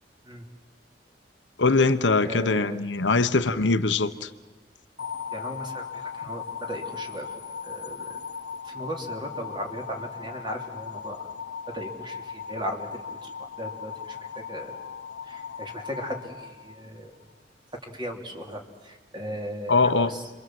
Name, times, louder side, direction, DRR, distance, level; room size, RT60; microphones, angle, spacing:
voice 1, 1.6-4.3 19.7-20.1, left 3 dB, 90° left, 1.1 m, -22 dB
voice 2, 2.2-2.8 5.3-7.3 7.6-8.2 8.6-11.2 11.7-13.3 13.6-14.7 15.2-17.1 17.8-20.2, equal, 25° right, 3.4 m, -37 dB
sound 1, 5.0-17.2, left 7 dB, 65° left, 1.1 m, -38 dB
29.5 x 24.0 x 7.8 m
head